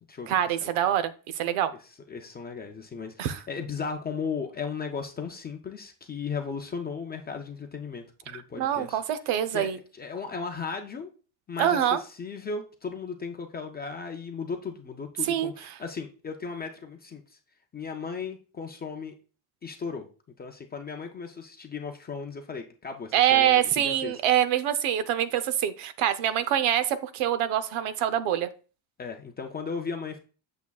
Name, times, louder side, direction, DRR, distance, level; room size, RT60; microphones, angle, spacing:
voice 1, 0.3-1.7 3.2-3.4 8.3-9.8 11.6-12.0 15.2-15.5 23.1-28.5, right 11 dB, 85° right, 0.8 m, -25 dB
voice 2, 2.1-9.0 9.5-11.1 11.5-17.4 17.7-19.1 19.6-20.1 20.4-24.1 29.0-30.2, left 5 dB, 25° left, 0.3 m, -36 dB
8.2 x 6.9 x 2.3 m
cardioid pair, 175°, 49 cm